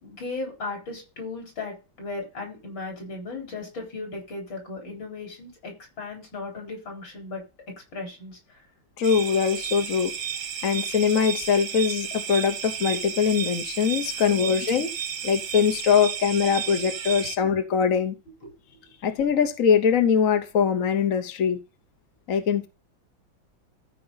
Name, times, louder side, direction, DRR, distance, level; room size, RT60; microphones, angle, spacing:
voice 1, 0.0-7.4 7.9-8.4 14.3-14.6 18.4-18.5, left 3 dB, 70° left, 5.0 m, -36 dB
voice 2, 9.0-10.1 10.6-14.9 15.2-18.1 19.0-21.6 22.3-22.7, left 7 dB, 50° left, 1.2 m, -22 dB
sound 1, 9.0-17.4, right 8 dB, 65° right, 0.6 m, -33 dB
14.0 x 5.1 x 4.0 m
omnidirectional pair, 2.1 m